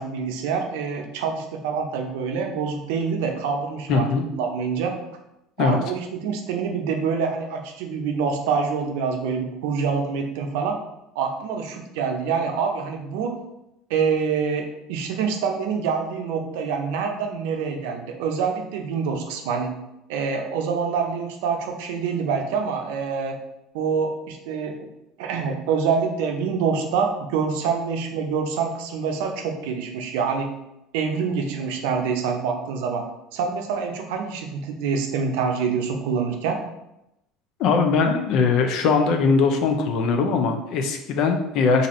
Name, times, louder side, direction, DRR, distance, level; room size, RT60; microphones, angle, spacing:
voice 1, 0.0-4.9 5.6-10.8 11.2-13.4 13.9-19.7 20.1-23.4 23.7-24.9 25.2-30.5 30.9-33.0 33.3-36.6, right 5 dB, 80° right, 3 dB, 0.6 m, -26 dB
voice 2, 3.9-4.2 5.6-5.8 37.6-41.9, left 4 dB, 60° left, 6 dB, 0.5 m, -20 dB
2.7 x 2.5 x 4.2 m, 0.87 s
supercardioid pair, 120°, 0 cm